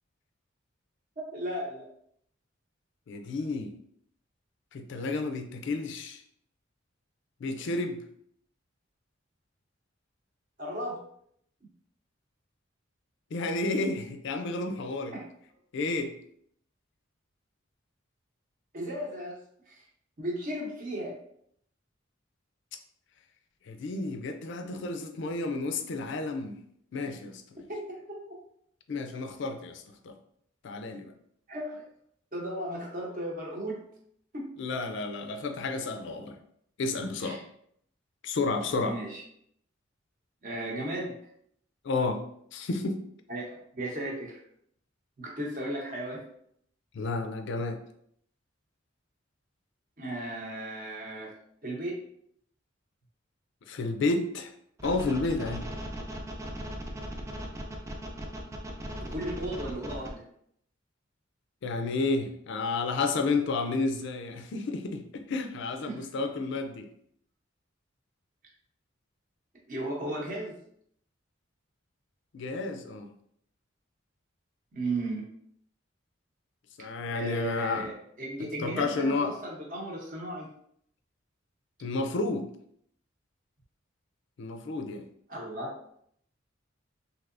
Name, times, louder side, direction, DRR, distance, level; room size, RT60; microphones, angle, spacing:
voice 1, 1.2-1.9 10.6-11.0 15.1-15.2 18.7-19.4 19.7-19.8 20.2-21.2 27.7-28.4 31.5-31.8 32.3-33.8 34.3-34.5 37.2-37.4 38.8-39.2 40.4-41.1 43.3-44.4 45.2-46.2 50.0-51.3 51.6-52.0 59.0-60.2 65.9-66.0 69.7-70.6 74.7-75.3 77.1-80.5 85.3-85.7, right 1 dB, 45° right, -3 dB, 0.8 m, -35 dB
voice 2, 3.1-3.7 4.7-6.2 7.4-8.0 13.3-15.1 15.7-16.1 23.7-26.6 26.9-27.6 28.9-30.1 30.6-31.1 34.6-36.4 36.8-37.4 38.2-39.0 41.8-42.2 42.5-43.1 46.9-47.8 53.7-54.5 54.8-55.7 61.6-66.9 72.3-73.1 76.8-77.9 78.4-79.4 81.8-82.5 84.4-85.0, left 3 dB, 65° left, 6 dB, 0.4 m, -31 dB
sound 1, 54.8-60.1, equal, 15° right, 0.4 m, -38 dB
3.3 x 2.7 x 2.5 m, 0.68 s
head